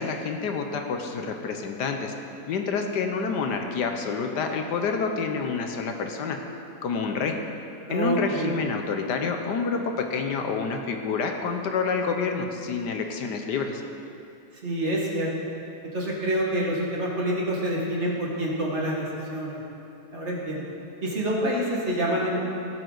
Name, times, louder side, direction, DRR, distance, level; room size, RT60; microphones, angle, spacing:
voice 1, 0.0-2.1 2.5-6.4 6.8-7.3 7.9-9.8 10.1-13.8, left 5 dB, 70° left, 4 dB, 1.4 m, -28 dB
voice 2, 7.9-8.5 14.6-15.3 15.9-19.6 20.1-20.6 21.0-22.4, right 1 dB, 40° right, -3 dB, 1.9 m, -27 dB
16.5 x 8.0 x 3.9 m, 2.8 s
omnidirectional pair, 1.9 m